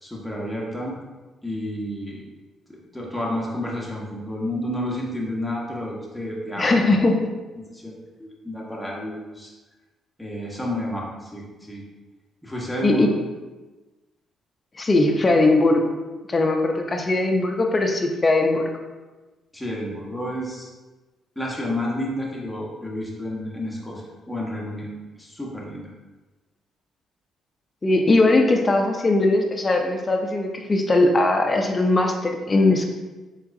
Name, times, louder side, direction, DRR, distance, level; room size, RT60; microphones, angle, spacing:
voice 1, 0.0-1.0 1.4-2.2 2.7-7.0 7.6-9.5 10.2-11.8 12.4-13.1 19.5-20.7 21.4-25.9, left 1 dB, 5° left, -3 dB, 1.1 m, -30 dB
voice 2, 6.6-7.3 12.8-13.1 14.8-16.0 16.3-18.7 27.8-32.8, left 2 dB, 30° left, 3 dB, 0.6 m, -20 dB
4.4 x 4.0 x 2.6 m, 1.2 s
cardioid pair, 90°, 0 cm